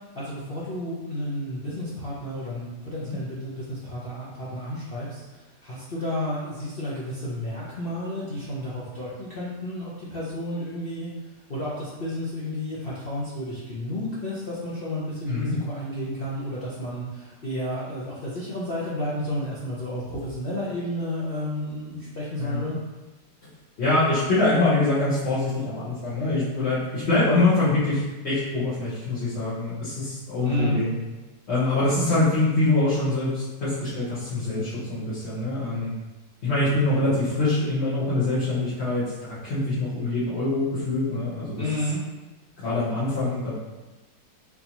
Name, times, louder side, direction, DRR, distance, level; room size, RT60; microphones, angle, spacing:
voice 1, 0.1-22.8 30.4-30.8 41.6-42.0, left 1 dB, 70° left, -9 dB, 0.5 m, -31 dB
voice 2, 22.4-22.7 23.8-31.0 31.5-35.9 36.4-41.6 42.6-43.5, left 2 dB, 45° left, -12 dB, 1.0 m, -24 dB
3.8 x 2.7 x 2.9 m, 1.1 s
omnidirectional pair, 1.9 m